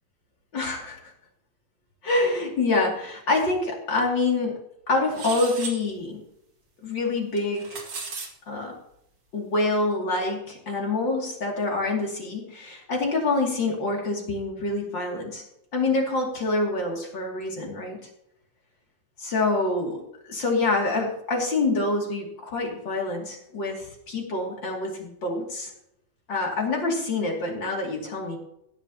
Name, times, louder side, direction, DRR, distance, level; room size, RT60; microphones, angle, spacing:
voice 1, 0.5-1.1 2.0-4.6 4.9-6.2 6.8-7.8 8.5-8.7 9.3-15.4 15.7-18.0 19.2-25.7 26.3-28.4, left 2 dB, 35° left, 0 dB, 2.9 m, -26 dB
sound 1, 5.1-5.8 7.4-8.3, right 4 dB, 40° right, 2.7 m, -35 dB
17.0 x 10.5 x 2.9 m, 0.77 s
omnidirectional pair, 3.9 m